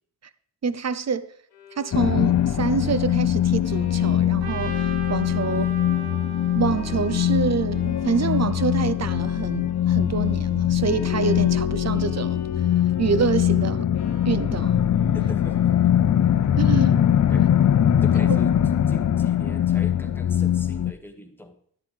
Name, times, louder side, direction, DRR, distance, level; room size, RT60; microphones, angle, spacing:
voice 1, 0.6-1.3 1.8-5.7 6.6-12.4 13.0-13.9 14.3-14.8 16.6-17.0 18.3-18.4, right 5 dB, 40° right, 0.7 m, -26 dB
Bowed string instrument, 1.5-17.6, left 5 dB, 85° left, 1.4 m, -47 dB
sound 1, 1.9-20.9, left 10 dB, 50° left, 0.5 m, -22 dB
Trumpet, 4.4-8.6, right 6 dB, 75° right, 0.9 m, -39 dB
voice 2, 5.4-5.8 15.1-15.7 17.3-17.4 18.0-18.5 18.9-21.6, left 1 dB, 5° left, 1.5 m, -40 dB
10.5 x 9.1 x 3.3 m
cardioid pair, 50°, 39 cm